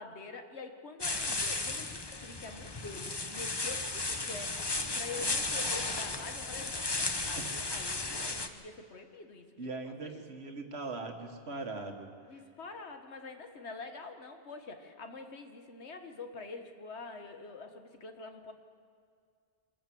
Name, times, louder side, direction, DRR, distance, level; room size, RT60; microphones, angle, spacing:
voice 1, 0.0-9.5 9.8-10.2 11.5-11.6 12.3-18.5, left 3 dB, 85° left, 6 dB, 1.8 m, -46 dB
sound 1, 1.0-8.5, left 3 dB, 25° left, 0.9 m, -34 dB
voice 2, 9.6-12.1, right 3 dB, 70° right, 5 dB, 2.0 m, -40 dB
24.5 x 14.5 x 7.8 m, 2.3 s
omnidirectional pair, 1.1 m